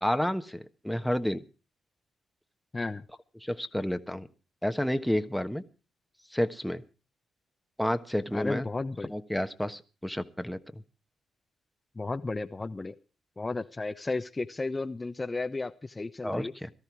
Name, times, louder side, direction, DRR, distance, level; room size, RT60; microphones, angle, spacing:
voice 1, 0.0-1.4 3.4-4.3 4.6-5.6 6.3-6.8 7.8-8.6 9.1-10.8 16.2-16.7, equal, 5° left, 8 dB, 1.3 m, -30 dB
voice 2, 2.7-3.0 8.3-9.1 12.0-12.9 13.4-16.5, left 3 dB, 25° left, 7 dB, 1.0 m, -33 dB
17.5 x 13.5 x 4.7 m, 0.34 s
supercardioid pair, 60°, 0 cm